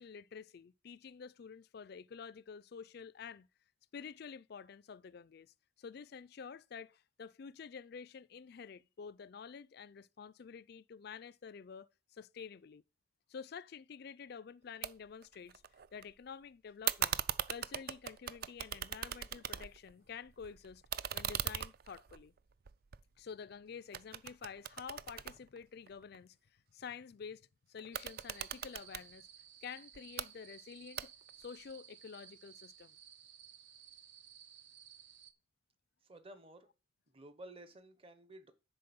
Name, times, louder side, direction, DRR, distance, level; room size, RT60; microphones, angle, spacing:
voice 1, 0.0-3.5 3.9-12.8 13.3-15.6 15.9-17.2 17.5-20.8 21.1-22.3 23.2-26.4 26.7-29.3 29.6-31.1 31.4-33.0, left 6 dB, 50° left, 0.4 m, -49 dB
sound 1, 14.8-14.9 15.2-16.0 16.8-19.9 20.3-23.5 23.9-26.2 27.8-29.1 29.9-30.3 31.0-31.4, right 10 dB, 50° right, 0.4 m, -39 dB
sound 2, 27.9-35.3, right 9 dB, 65° right, 0.9 m, -57 dB
voice 2, 36.0-36.7 37.1-38.5, right 1 dB, 30° right, 1.0 m, -53 dB
10.5 x 4.2 x 7.0 m
head